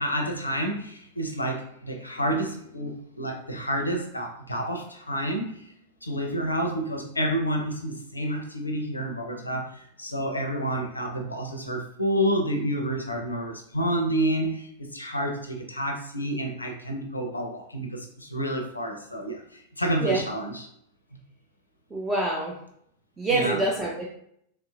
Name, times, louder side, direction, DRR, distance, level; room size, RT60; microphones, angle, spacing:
voice 1, 0.0-5.6 6.0-20.7 23.3-23.6, right 1 dB, 85° left, 3 dB, 0.5 m, -29 dB
voice 2, 21.9-22.6 23.2-24.1, right 2 dB, 15° right, -2 dB, 0.4 m, -26 dB
3.1 x 3.0 x 2.3 m, 0.71 s
figure-of-eight pair, 90°, 0 cm